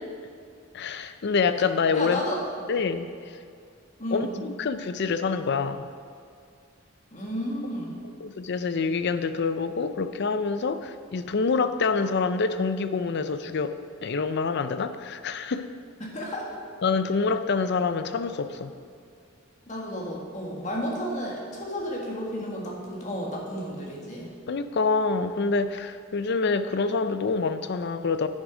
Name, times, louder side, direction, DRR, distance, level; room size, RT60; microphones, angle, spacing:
voice 1, 0.7-2.2 2.7-3.4 4.1-5.9 8.2-15.7 16.8-18.7 24.5-28.3, left 4 dB, 60° left, 11 dB, 0.5 m, -26 dB
voice 2, 1.9-2.4 4.0-4.4 7.1-7.9 16.0-16.6 19.7-24.3, equal, 40° left, -2 dB, 1.8 m, -32 dB
10.0 x 6.3 x 5.0 m, 2.3 s
head